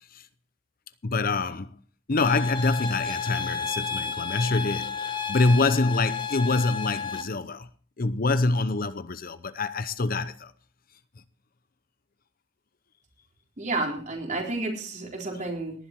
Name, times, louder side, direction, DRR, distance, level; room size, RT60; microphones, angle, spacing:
voice 1, 1.0-1.7 2.1-7.7 8.0-10.5, left 3 dB, 45° left, 0.8 m, -25 dB
sound 1, 2.2-7.2, left 6 dB, 25° left, 1.6 m, -32 dB
voice 2, 13.6-15.7, right 2 dB, 40° right, 4.0 m, -31 dB
18.5 x 11.0 x 4.5 m
head